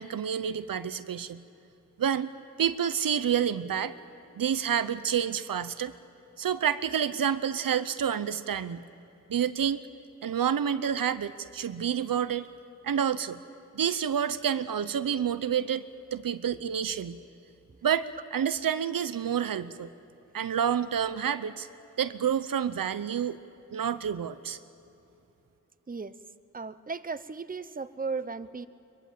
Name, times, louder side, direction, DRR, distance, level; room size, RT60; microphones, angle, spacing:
voice 1, 0.0-1.4 2.0-2.3 2.6-3.9 4.4-5.9 6.4-8.8 9.3-9.8 10.2-12.5 12.8-13.4 13.7-15.9 16.1-17.2 17.8-19.9 20.3-21.7 22.0-23.4 23.7-24.6, right 8 dB, 80° right, 13 dB, 0.8 m, -28 dB
voice 2, 26.5-28.7, right 4 dB, 25° right, 12 dB, 0.8 m, -35 dB
23.0 x 22.0 x 7.6 m, 2.9 s
cardioid pair, 60°, 33 cm